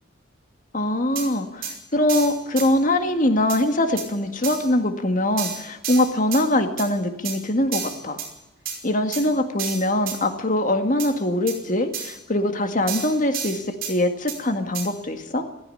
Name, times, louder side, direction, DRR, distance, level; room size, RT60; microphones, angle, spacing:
voice 1, 0.7-8.2 8.8-15.5, left 1 dB, 40° left, 6 dB, 2.0 m, -23 dB
sound 1, 1.2-1.3 1.6-1.7 2.1-2.7 3.5-3.6 4.0-4.1 4.4-4.7 5.4-6.4 6.8-6.9 7.2-7.4 7.7-8.3 8.7-8.8 9.1-9.2 9.6-10.2 11.0-11.1 11.5-11.6 11.9-12.2 12.9-13.9 14.3-14.4 14.7-14.9, right 7 dB, 50° right, 5.5 m, -31 dB
16.5 x 16.0 x 9.9 m, 0.93 s
head